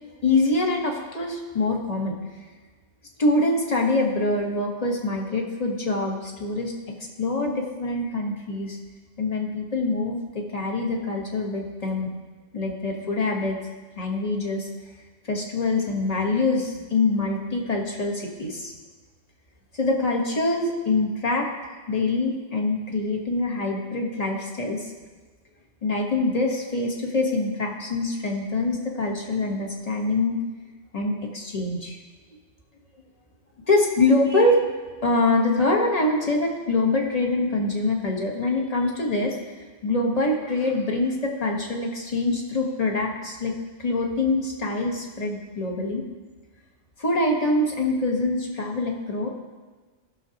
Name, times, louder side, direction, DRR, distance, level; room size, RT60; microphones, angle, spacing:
voice 1, 0.2-2.2 3.2-8.8 9.2-12.1 12.5-13.6 14.0-14.7 15.3-18.7 19.7-21.5 21.9-24.9 25.8-30.4 30.9-32.0 33.7-34.7 35.0-43.5 43.8-46.0 47.0-49.3, left 2 dB, 30° left, 0 dB, 1.3 m, -24 dB
16.5 x 6.4 x 2.9 m, 1.3 s
omnidirectional pair, 1.3 m